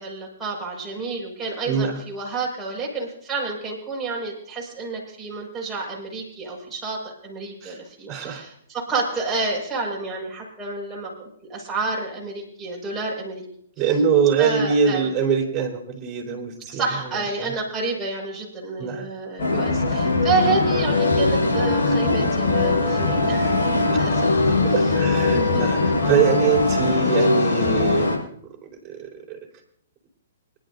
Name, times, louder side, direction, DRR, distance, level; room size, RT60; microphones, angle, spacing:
voice 1, 0.0-13.5 14.4-15.1 16.7-24.3 25.3-25.7, right 3 dB, 10° right, -4 dB, 5.7 m, -29 dB
voice 2, 1.7-2.0 7.6-7.8 8.1-8.4 13.8-16.8 17.1-17.5 18.8-19.1 24.4-28.2 28.6-29.4, right 6 dB, 30° right, 1 dB, 4.4 m, -23 dB
sound 1, 19.4-28.2, left 3 dB, 60° left, 5.7 m, -21 dB
25.5 x 11.5 x 2.7 m, 0.66 s
figure-of-eight pair, 125°, 0 cm